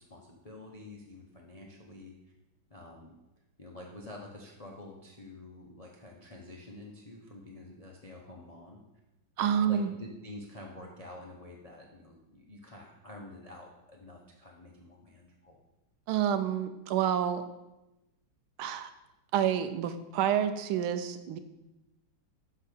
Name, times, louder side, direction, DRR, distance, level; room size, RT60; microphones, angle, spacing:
voice 1, 0.0-2.3 2.7-3.1 3.6-8.8 9.4-15.6, left 2 dB, 45° left, -1 dB, 0.4 m, -48 dB
voice 2, 9.4-9.9 16.1-17.4 18.6-18.9 19.3-21.4, right 9 dB, 85° right, 10 dB, 1.5 m, -28 dB
6.1 x 5.5 x 6.8 m, 0.97 s
omnidirectional pair, 2.2 m